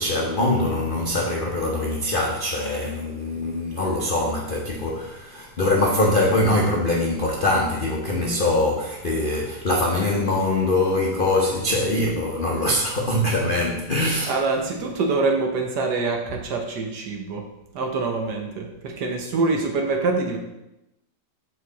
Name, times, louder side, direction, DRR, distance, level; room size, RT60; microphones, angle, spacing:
voice 1, 0.0-14.3, left 1 dB, 65° left, -2 dB, 0.5 m, -23 dB
voice 2, 14.3-17.5 17.7-20.4, right 3 dB, 65° right, 2 dB, 1.4 m, -25 dB
6.7 x 4.6 x 4.0 m, 0.90 s
omnidirectional pair, 2.2 m